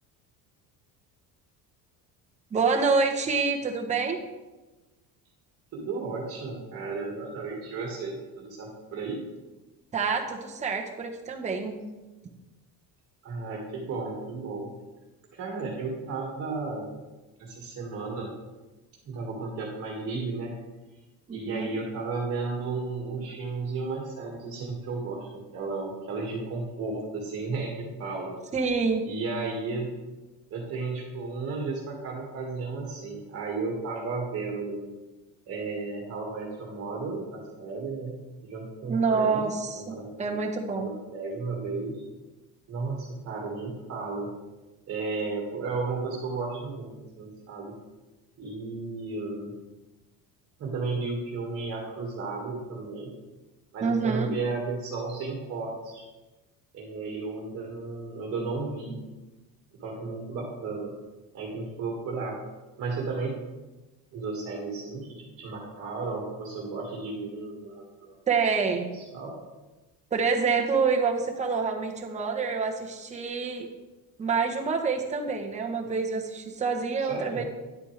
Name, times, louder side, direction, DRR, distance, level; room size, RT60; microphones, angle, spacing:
voice 1, 2.5-4.2 9.9-11.8 21.3-21.7 28.5-29.0 38.9-40.9 53.8-54.3 68.3-68.9 70.1-73.7 74.2-77.4, right 5 dB, 20° right, 2 dB, 0.9 m, -27 dB
voice 2, 5.7-9.2 13.2-14.7 15.3-16.9 17.4-18.3 19.1-20.6 21.3-28.3 29.0-29.9 30.5-34.8 35.5-38.2 38.5-39.4 39.7-40.4 40.8-42.0 42.7-44.3 44.9-47.7 48.4-49.5 50.6-53.1 53.7-56.1 56.7-59.0 59.8-60.9 61.3-62.4 62.8-63.3 64.1-68.1 68.9-69.3 77.0-77.4, right 3 dB, 35° right, -2 dB, 1.7 m, -34 dB
10.0 x 8.3 x 3.2 m, 1.1 s
cardioid pair, 165°, 39 cm